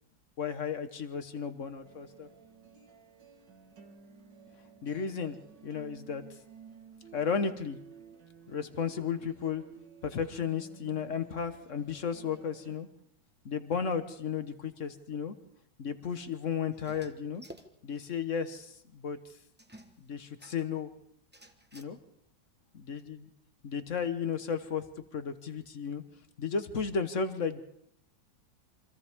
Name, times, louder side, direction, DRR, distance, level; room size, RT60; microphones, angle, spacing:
voice 1, 0.4-2.3 4.8-5.4 5.6-6.2 7.1-7.8 8.5-9.6 10.0-12.9 13.4-15.4 15.8-17.4 17.8-19.2 20.0-20.9 21.7-22.0 22.7-23.3 23.6-24.8 25.1-26.0 26.4-27.6, left 6 dB, 50° left, 9 dB, 1.5 m, -34 dB
sound 1, 1.8-12.8, right 6 dB, 80° right, 2.4 m, -55 dB
sound 2, 16.7-18.1 18.4-18.5 18.7-18.8 19.6-20.8 21.3-21.8, right 1 dB, 5° right, 0.9 m, -53 dB
28.0 x 25.0 x 3.7 m, 0.75 s
omnidirectional pair, 1.9 m